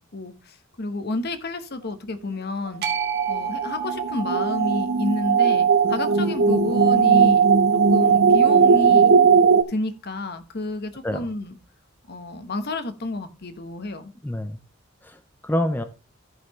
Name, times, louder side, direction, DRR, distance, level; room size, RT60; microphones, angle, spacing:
voice 1, 0.1-2.8 3.3-7.4 7.9-9.2 9.7-11.6 12.1-14.1, left 2 dB, 55° left, 1.1 m, -30 dB
sound 1, 2.8-9.0, right 6 dB, 55° right, 1.5 m, -34 dB
sound 2, 2.8-9.6, right 6 dB, 80° right, 0.6 m, -18 dB
voice 2, 14.2-14.6 15.0-15.8, left 1 dB, 10° left, 0.6 m, -27 dB
14.0 x 5.6 x 3.1 m
head